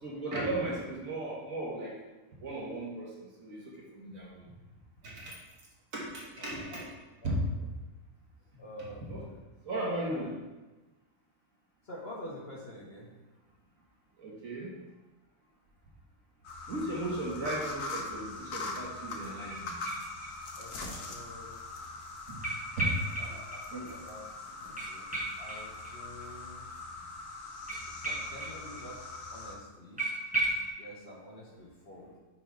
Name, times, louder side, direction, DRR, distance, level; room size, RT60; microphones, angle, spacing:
voice 1, 0.0-1.9 2.4-4.4 5.0-5.3 5.9-6.8 7.2-7.4 9.1-9.2 9.6-10.3 14.2-14.7 16.7-19.7 22.3-22.4 22.8-22.9 23.7-23.9, right 1 dB, 60° right, -3 dB, 1.7 m, -36 dB
voice 2, 6.4-6.8 7.2-7.7 8.6-9.4 10.1-10.2 11.8-13.1 20.6-21.6 23.2-24.3 24.5-25.1 25.4-26.6 27.9-29.0 29.3-30.0 30.8-32.2, left 1 dB, 45° left, -3 dB, 1.3 m, -48 dB
sound 1, 16.4-29.6, left 3 dB, 75° left, 1.4 m, -42 dB
sound 2, 19.5-20.6 20.9-21.0 22.4-23.6 23.9-24.0 24.2-24.3 24.8-26.3 27.7-28.9 29.1-29.2 29.5-29.6 30.0-30.7, right 2 dB, 5° right, 1.1 m, -35 dB
5.7 x 4.5 x 4.6 m, 1.2 s
omnidirectional pair, 1.7 m